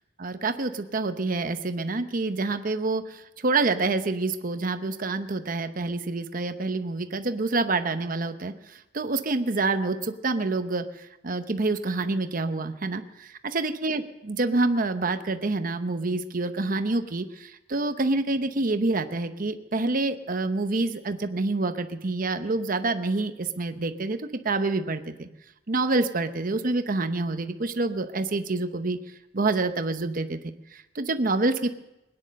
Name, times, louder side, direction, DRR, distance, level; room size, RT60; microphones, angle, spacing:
voice 1, 0.2-25.3 25.7-29.0 29.3-30.4 30.7-31.7, right 3 dB, 50° right, 8 dB, 0.9 m, -27 dB
21.0 x 9.9 x 6.5 m, 0.91 s
head